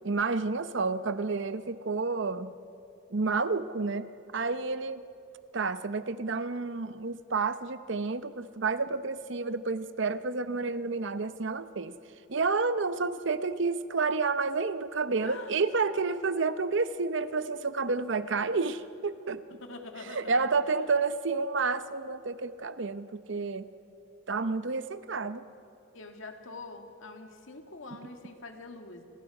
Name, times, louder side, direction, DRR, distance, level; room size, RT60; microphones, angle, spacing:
voice 1, 0.0-2.5 3.1-4.1 4.3-5.0 5.5-12.0 12.3-19.4 20.1-23.7 24.3-25.4, right 4 dB, 60° right, 13 dB, 0.7 m, -30 dB
voice 2, 15.2-15.6 19.6-20.9 25.9-29.0, left 3 dB, 70° left, 5 dB, 2.0 m, -45 dB
29.0 x 20.5 x 4.9 m, 2.8 s
head